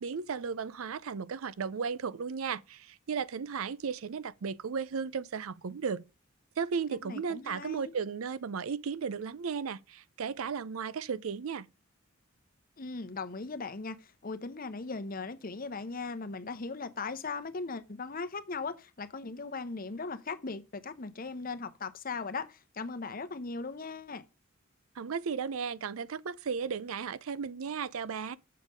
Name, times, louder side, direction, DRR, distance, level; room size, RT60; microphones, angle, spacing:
voice 1, 0.0-6.0 6.6-11.7 25.0-28.4, right 6 dB, 80° right, 0.5 m, -35 dB
voice 2, 7.0-7.9 12.8-24.2, left 4 dB, 40° left, 0.8 m, -38 dB
7.4 x 6.7 x 5.1 m
head